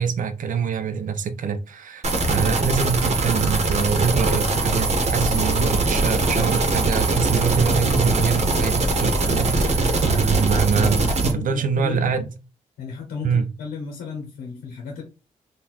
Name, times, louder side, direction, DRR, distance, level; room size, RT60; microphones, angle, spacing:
voice 1, 0.0-12.3 13.2-13.5, right 6 dB, 65° right, 0.7 m, -24 dB
sound 1, 2.0-11.3, right 3 dB, 50° right, 1.0 m, -22 dB
sound 2, 4.4-9.9, left 2 dB, 30° left, 0.9 m, -35 dB
voice 2, 10.7-12.2 12.8-15.0, left 5 dB, 85° left, 0.8 m, -34 dB
3.8 x 2.5 x 3.0 m
supercardioid pair, 55°, 15 cm